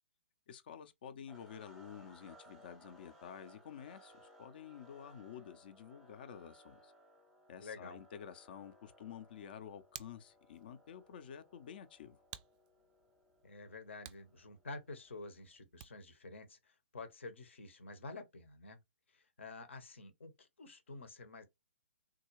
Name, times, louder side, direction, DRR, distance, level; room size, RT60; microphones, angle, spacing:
voice 1, 0.5-6.9 7.5-12.2, left 8 dB, 50° left, 0.5 m, -50 dB
sound 1, 1.3-15.4, equal, ahead, 0.8 m, -63 dB
voice 2, 7.6-8.0 13.4-18.8 19.1-21.4, left 3 dB, 65° left, 0.9 m, -49 dB
Hands, 9.3-16.2, right 12 dB, 30° right, 0.3 m, -57 dB
3.5 x 2.3 x 3.1 m
figure-of-eight pair, 125°, 7 cm